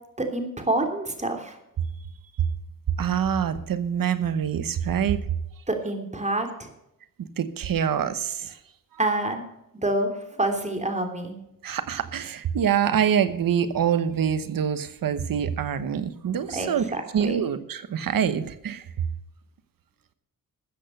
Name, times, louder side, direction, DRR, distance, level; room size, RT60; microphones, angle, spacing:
voice 1, 0.2-1.6 5.7-6.7 9.0-9.4 9.7-10.1 10.4-11.3 16.5-17.4, right 2 dB, 20° right, 4 dB, 3.0 m, -27 dB
voice 2, 3.0-5.2 7.2-8.6 11.6-16.9 17.1-18.8, right 8 dB, 90° right, 12 dB, 1.1 m, -25 dB
13.5 x 8.0 x 6.5 m, 0.82 s
cardioid pair, 85°, 33 cm